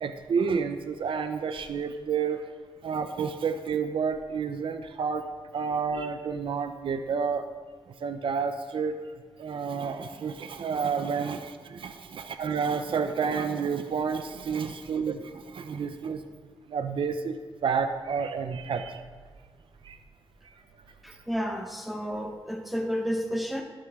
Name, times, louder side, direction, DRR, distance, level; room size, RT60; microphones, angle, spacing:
voice 1, 0.0-2.5 2.8-5.3 5.5-7.5 7.9-9.0 9.4-16.2 16.7-19.0 19.8-20.0 20.4-20.5, right 6 dB, 70° right, 8 dB, 0.7 m, -30 dB
voice 2, 21.0-23.6, equal, ahead, 1 dB, 1.3 m, -31 dB
12.0 x 12.0 x 3.7 m, 1.5 s
cardioid pair, 80°, 9 cm